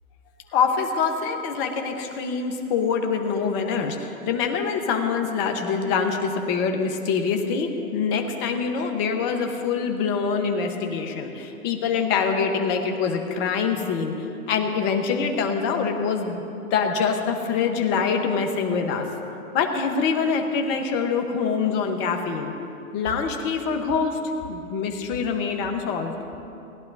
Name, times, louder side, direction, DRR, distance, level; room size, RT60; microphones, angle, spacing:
voice 1, 0.5-19.0 19.5-22.5 22.9-24.2 24.5-26.1, left 5 dB, 25° left, 4 dB, 1.2 m, -25 dB
19.5 x 11.0 x 2.8 m, 2.8 s
hypercardioid pair, 135°, 44 cm